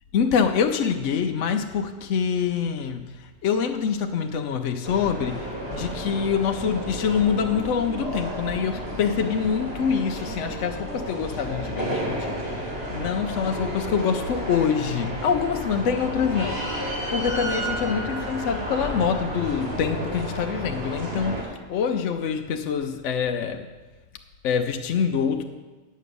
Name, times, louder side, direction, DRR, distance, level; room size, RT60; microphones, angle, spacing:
voice 1, 0.1-23.7 24.4-25.4, left 7 dB, 70° left, 4 dB, 1.0 m, -25 dB
sound 1, 4.8-21.4, equal, 50° right, 2.8 m, -32 dB
9.2 x 7.6 x 6.8 m, 1.3 s
omnidirectional pair, 1.4 m